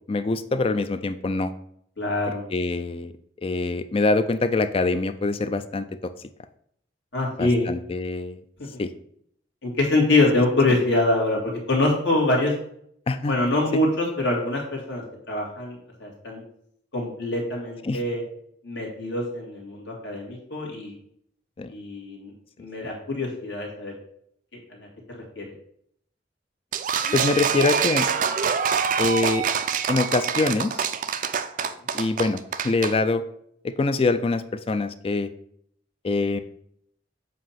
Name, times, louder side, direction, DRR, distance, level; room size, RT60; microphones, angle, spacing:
voice 1, 0.1-1.5 2.3-3.1 3.4-6.1 7.4-8.4 8.8-8.9 13.1-13.3 17.8-18.0 21.6-21.7 27.1-28.1 29.0-29.5 29.9-30.9 31.9-33.2 33.6-35.3 36.0-36.4, left 3 dB, 30° left, 11 dB, 0.3 m, -24 dB
voice 2, 2.0-2.4 7.1-7.7 9.6-12.5 13.3-16.4 16.9-18.2 18.6-20.9 21.7-22.3 22.6-23.9 24.7-25.5 31.6-31.7, left 2 dB, 75° left, -2 dB, 2.0 m, -24 dB
sound 1, 26.7-32.9, right 7 dB, 45° right, 0.4 m, -25 dB
7.5 x 2.7 x 5.6 m, 0.69 s
head